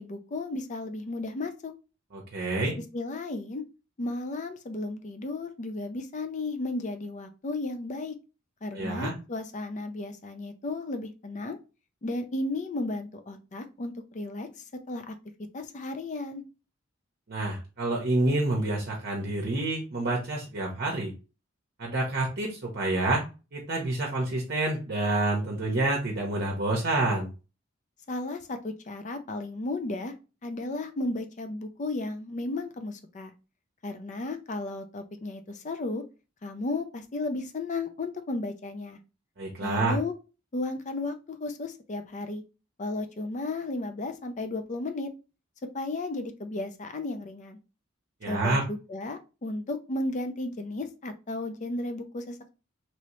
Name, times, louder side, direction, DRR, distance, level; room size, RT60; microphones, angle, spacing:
voice 1, 0.0-1.7 2.6-2.7 2.9-3.6 4.0-8.1 8.6-11.6 12.0-15.1 15.5-16.4 28.1-30.1 30.4-33.3 33.8-36.0 36.4-39.0 39.6-40.1 40.5-42.4 42.8-45.1 45.7-47.6 48.3-52.5, left 2 dB, 40° left, 8 dB, 0.5 m, -34 dB
voice 2, 2.1-2.7 8.7-9.1 17.3-21.1 21.8-23.2 23.5-27.3 39.4-40.0 48.2-48.6, right 2 dB, 55° right, -1 dB, 0.7 m, -28 dB
3.0 x 2.8 x 2.9 m, 0.31 s
head